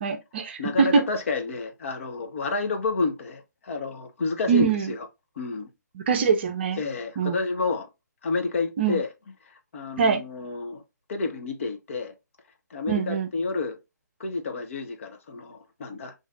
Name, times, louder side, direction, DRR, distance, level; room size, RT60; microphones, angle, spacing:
voice 1, 0.0-1.1 4.5-4.9 6.0-6.8 7.2-7.4 8.8-9.0 10.0-10.2 12.9-13.3, right 6 dB, 35° right, 0.6 m, -23 dB
voice 2, 0.6-5.1 5.4-5.7 6.8-7.9 8.2-9.1 9.5-10.8 11.1-12.1 12.7-13.8 14.2-16.1, left 4 dB, 45° left, 0.8 m, -30 dB
6.3 x 2.6 x 2.4 m
figure-of-eight pair, 140°, 10 cm